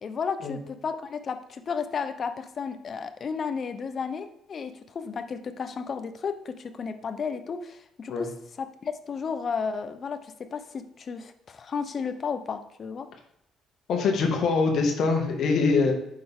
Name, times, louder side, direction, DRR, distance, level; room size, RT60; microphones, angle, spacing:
voice 1, 0.0-8.3 8.6-13.1, left 5 dB, 45° left, 10 dB, 1.0 m, -33 dB
voice 2, 13.9-15.9, left 4 dB, 65° left, 2 dB, 2.1 m, -23 dB
9.1 x 6.7 x 3.8 m, 0.78 s
cardioid pair, 90°, 0 cm